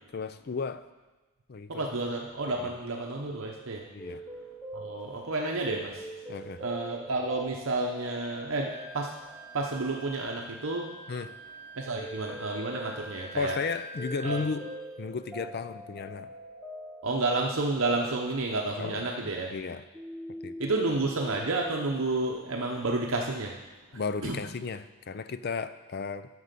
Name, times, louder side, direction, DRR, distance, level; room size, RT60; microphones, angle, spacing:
voice 1, 0.1-0.9 1.5-1.8 2.6-2.7 3.9-4.2 6.3-6.6 11.1-11.4 13.4-14.7 15.0-16.3 18.8-19.8 20.4-20.5 23.9-26.3, left 5 dB, 50° left, 13 dB, 0.4 m, -34 dB
voice 2, 1.7-3.8 4.7-6.1 6.6-9.2 9.5-10.9 11.8-13.6 14.2-14.4 17.0-19.5 20.6-23.6 23.9-24.4, right 2 dB, 70° right, 0 dB, 0.9 m, -30 dB
sound 1, 4.0-19.6 19.9-21.9, equal, ahead, 0.9 m, -44 dB
Wind instrument woodwind instrument, 8.7-14.9, right 1 dB, 30° right, 1.5 m, -47 dB
9.5 x 6.3 x 6.8 m, 1.2 s
head